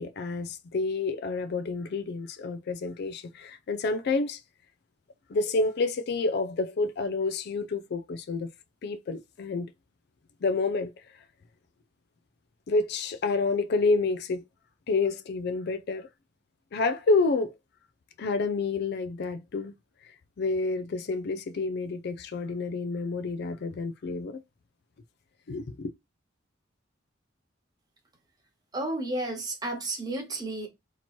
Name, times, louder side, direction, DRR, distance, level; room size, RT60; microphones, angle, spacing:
voice 1, 0.0-4.4 5.3-8.5 8.8-9.7 10.4-10.9 12.7-14.4 14.9-16.1 16.7-17.5 18.2-19.7 20.4-24.4 25.5-25.9, left 3 dB, 55° left, 0.4 m, -29 dB
voice 2, 28.7-30.7, right 2 dB, 20° right, 1.2 m, -32 dB
2.9 x 2.9 x 4.3 m
head